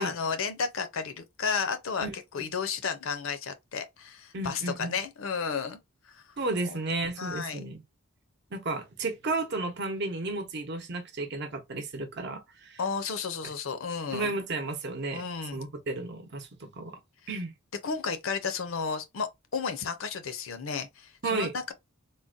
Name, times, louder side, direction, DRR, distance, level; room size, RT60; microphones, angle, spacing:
voice 1, 0.0-2.1 2.3-5.8 6.1-6.2 6.6-6.8 7.2-7.6 12.8-14.3 15.1-15.6 17.8-21.7, left 5 dB, 65° left, 0.6 m, -33 dB
voice 2, 4.3-5.0 6.4-7.8 8.5-12.8 14.1-15.2 15.5-17.0 17.3-17.5 21.2-21.5, right 2 dB, 50° right, 0.8 m, -33 dB
3.8 x 2.1 x 2.5 m
head